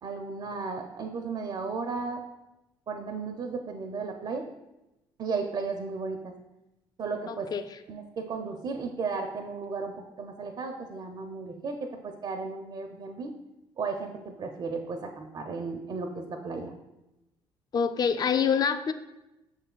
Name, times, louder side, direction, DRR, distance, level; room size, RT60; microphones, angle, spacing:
voice 1, 0.0-2.2 2.9-4.5 5.2-6.3 7.0-7.5 7.9-13.3 13.8-16.7, right 4 dB, 40° right, 5 dB, 0.4 m, -34 dB
voice 2, 7.3-7.8 17.7-18.9, left 6 dB, 35° left, 10 dB, 0.4 m, -26 dB
6.5 x 3.2 x 2.2 m, 0.98 s
hypercardioid pair, 55°, 11 cm